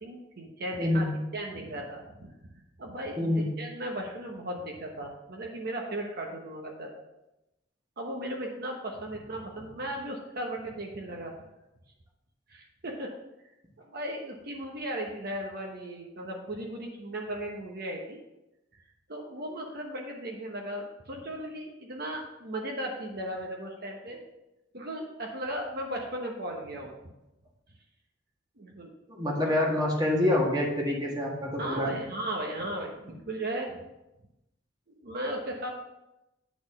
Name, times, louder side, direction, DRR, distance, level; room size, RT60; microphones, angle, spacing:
voice 1, 0.0-1.1 1.3-2.4 2.8-6.9 8.0-11.3 12.5-13.1 13.8-18.2 19.1-24.2 24.7-26.9 28.6-28.9 31.6-33.8 34.9-35.7, right 1 dB, 60° right, 0 dB, 1.1 m, -36 dB
voice 2, 0.8-1.1 3.2-3.5 29.1-31.9, left 1 dB, 20° right, -1 dB, 1.6 m, -26 dB
9.4 x 4.3 x 5.5 m, 0.94 s
head